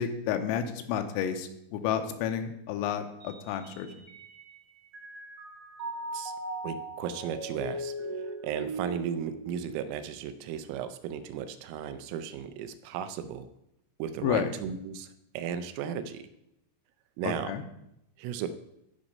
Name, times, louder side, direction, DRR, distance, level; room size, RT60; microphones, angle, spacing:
voice 1, 0.0-3.9 14.2-14.5 17.2-17.6, left 8 dB, 90° left, 7 dB, 3.5 m, -31 dB
Mallet percussion, 3.2-4.6 4.9-10.4, right 1 dB, 50° right, 1.4 m, -39 dB
voice 2, 6.6-13.5 14.0-15.1 15.3-16.3 17.2-17.5 18.2-18.5, right 8 dB, 85° right, 10 dB, 3.2 m, -35 dB
14.0 x 5.3 x 5.3 m, 0.82 s
omnidirectional pair, 6.0 m